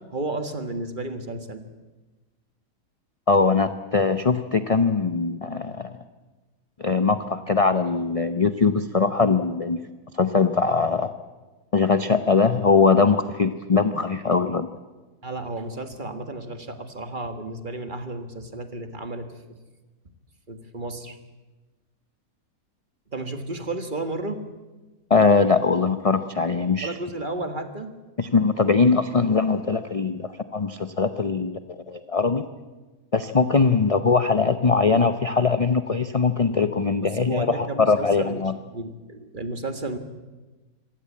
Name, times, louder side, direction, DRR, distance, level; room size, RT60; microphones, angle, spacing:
voice 1, 0.0-1.6 15.2-19.6 20.5-21.2 23.1-24.4 26.8-28.0 37.0-38.4 38.7-40.0, right 2 dB, 35° right, 8 dB, 1.7 m, -33 dB
voice 2, 3.3-5.9 6.8-9.8 10.1-11.1 11.7-14.7 25.1-27.0 28.2-31.6 31.9-32.4 33.1-38.5, left 4 dB, 35° left, 10 dB, 0.7 m, -21 dB
26.0 x 17.0 x 8.5 m, 1.2 s
omnidirectional pair, 1.5 m